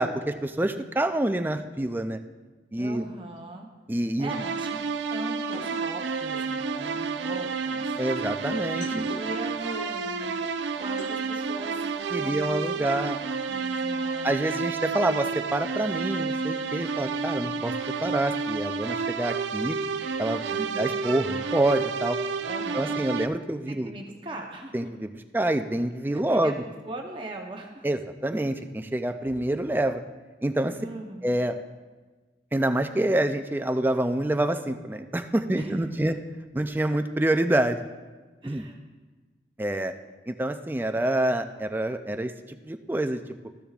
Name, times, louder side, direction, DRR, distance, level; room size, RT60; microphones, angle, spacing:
voice 1, 0.0-2.2 2.7-3.0 3.9-4.3 8.0-8.9 12.1-13.2 14.2-17.7 18.0-19.8 20.2-20.4 20.8-22.2 22.7-23.9 24.7-26.5 27.8-30.0 30.4-30.8 31.2-31.5 32.5-36.2 36.5-37.8 38.4-38.6 39.6-39.9 40.3-43.2, right 1 dB, 10° right, 8 dB, 0.3 m, -27 dB
voice 2, 2.8-3.7 4.2-4.8 5.1-7.9 8.9-10.3 10.8-12.9 13.5-14.6 20.5-20.9 22.5-23.0 23.7-24.7 26.1-26.5 26.8-27.9 30.8-31.3 35.5-35.7 38.4-38.8, right 2 dB, 30° right, 1 dB, 0.8 m, -39 dB
sound 1, 3.4-3.5 5.5-6.6 8.6-9.4 10.8-11.3, left 1 dB, 85° left, 1.5 m, -41 dB
sound 2, 4.3-23.3, right 5 dB, 85° right, 0.5 m, -30 dB
14.0 x 10.5 x 2.4 m, 1.3 s
head